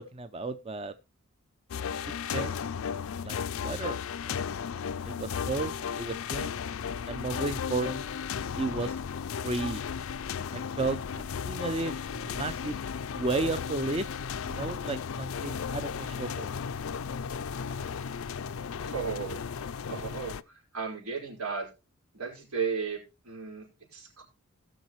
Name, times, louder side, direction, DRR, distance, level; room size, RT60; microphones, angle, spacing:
voice 1, 0.1-0.9 2.3-2.5 3.2-3.4 3.6-4.0 4.3-4.5 5.1-6.6 7.1-8.0 8.6-8.9 9.4-9.8 10.5-12.8 13.2-14.1 14.5-16.5, right 3 dB, 25° right, 10 dB, 0.5 m, -33 dB
sound 1, 1.7-20.4, left 6 dB, 70° left, 0.4 m, -35 dB
voice 2, 18.8-21.7 22.1-24.2, right 6 dB, 90° right, -1 dB, 4.9 m, -35 dB
18.5 x 6.4 x 3.1 m, 0.27 s
head